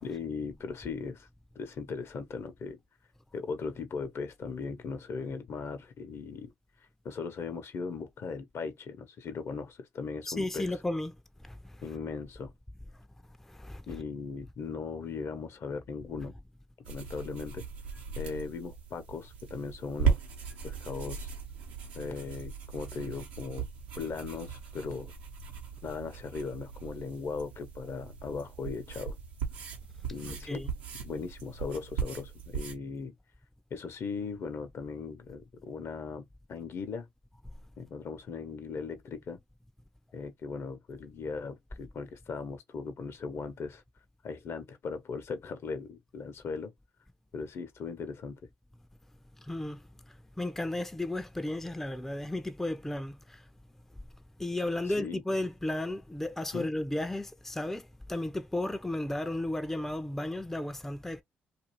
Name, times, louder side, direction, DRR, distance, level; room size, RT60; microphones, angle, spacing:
voice 1, 0.0-1.3 1.5-2.8 3.3-6.5 7.0-10.8 11.8-12.5 13.9-16.3 16.9-17.6 18.1-20.2 20.6-21.3 21.9-23.7 24.0-25.1 25.8-29.2 30.1-30.7 31.0-33.1 33.7-37.1 37.8-39.4 40.1-43.8 44.2-46.7 47.3-48.4 55.0-55.2 56.5-56.7, left 5 dB, 55° left, 0.7 m, -38 dB
voice 2, 10.3-11.1 11.4-12.0 13.5-14.0 30.2-30.7 49.4-53.4 54.4-61.2, left 1 dB, 5° left, 0.4 m, -34 dB
sound 1, 16.9-32.8, right 6 dB, 90° right, 0.8 m, -37 dB
2.5 x 2.4 x 2.9 m
hypercardioid pair, 50°, 5 cm